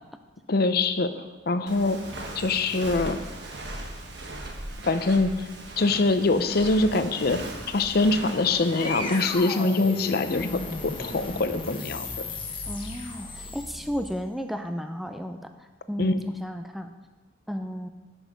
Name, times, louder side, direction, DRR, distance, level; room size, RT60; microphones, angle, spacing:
voice 1, 0.5-1.1 1.5-2.0 2.4-3.2 4.8-5.5 5.8-7.4 7.7-10.5 10.8-12.2 16.0-16.2, left 3 dB, 55° left, 10 dB, 0.6 m, -24 dB
Walk footsteps, 1.7-9.4, right 1 dB, 65° right, 1.3 m, -39 dB
sound 1, 7.9-14.2, left 2 dB, 30° left, 1.3 m, -36 dB
voice 2, 12.7-16.9 17.5-17.9, equal, ahead, 7 dB, 0.4 m, -33 dB
10.5 x 6.3 x 5.2 m, 1.2 s
head